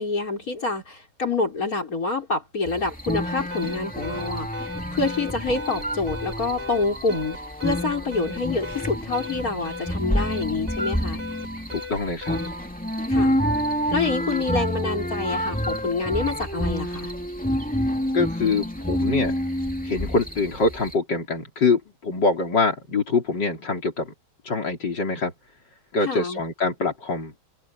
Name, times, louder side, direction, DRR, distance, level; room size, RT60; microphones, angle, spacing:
voice 1, 0.0-11.2 13.1-13.4 13.9-17.1 26.0-26.4, left 3 dB, 55° left, 5.5 m, -27 dB
sound 1, 2.7-20.9, equal, 5° left, 2.6 m, -28 dB
Alarm, 3.5-12.7, left 2 dB, 85° right, 5.7 m, -38 dB
voice 2, 11.7-12.4 18.1-19.3 19.8-24.1 24.4-25.3 25.9-27.3, left 3 dB, 85° left, 4.6 m, -24 dB
omnidirectional pair, 1.8 m